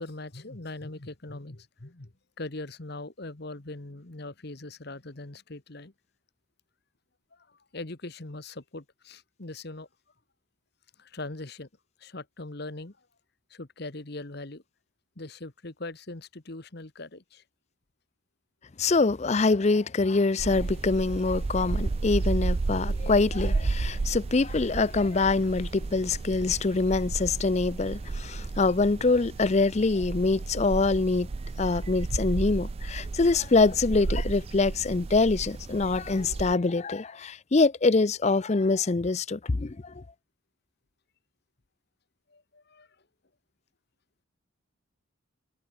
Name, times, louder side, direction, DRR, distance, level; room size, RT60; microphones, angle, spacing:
voice 1, 0.0-2.1 2.4-5.9 7.3-9.9 11.0-11.7 12.0-13.0 13.5-14.6 15.2-17.4 42.3-42.9, left 2 dB, 50° left, 1.4 m, -41 dB
voice 2, 18.8-31.3 31.6-40.0, left 3 dB, 30° left, 0.5 m, -25 dB
sound 1, 20.4-36.5, right 3 dB, 30° right, 0.3 m, -32 dB
head